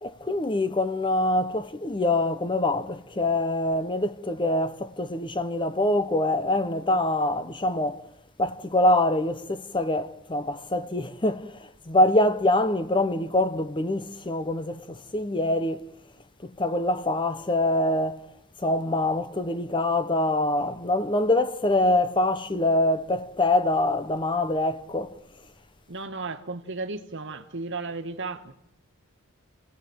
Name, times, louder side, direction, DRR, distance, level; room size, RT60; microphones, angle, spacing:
voice 1, 0.0-8.1 8.4-15.9 16.4-18.2 18.6-25.1, left 1 dB, 20° left, 0.9 m, -25 dB
voice 2, 25.9-28.5, right 3 dB, 55° right, 1.6 m, -34 dB
29.5 x 18.5 x 8.0 m
head